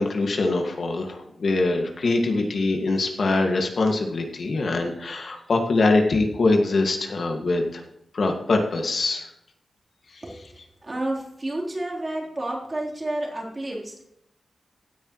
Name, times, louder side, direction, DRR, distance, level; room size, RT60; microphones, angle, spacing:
voice 1, 0.0-7.8 8.1-9.3 10.1-10.4, left 3 dB, 60° left, 3 dB, 1.9 m, -23 dB
voice 2, 10.2-14.0, right 1 dB, 30° right, -3 dB, 3.7 m, -31 dB
16.0 x 9.0 x 3.1 m, 0.77 s
wide cardioid pair, 105°, 0 cm